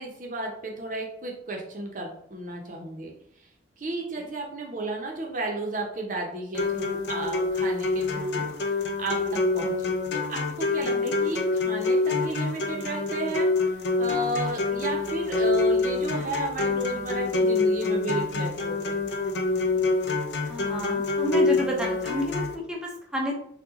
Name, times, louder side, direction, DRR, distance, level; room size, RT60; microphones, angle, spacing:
voice 1, 0.0-3.1 3.8-9.9 10.3-19.0, right 2 dB, 50° right, 0 dB, 0.7 m, -33 dB
sound 1, 6.5-22.5, left 3 dB, 70° left, 0.5 m, -26 dB
voice 2, 10.8-11.1 20.5-23.4, equal, 5° right, -1 dB, 0.5 m, -31 dB
2.9 x 2.3 x 3.5 m, 0.68 s
head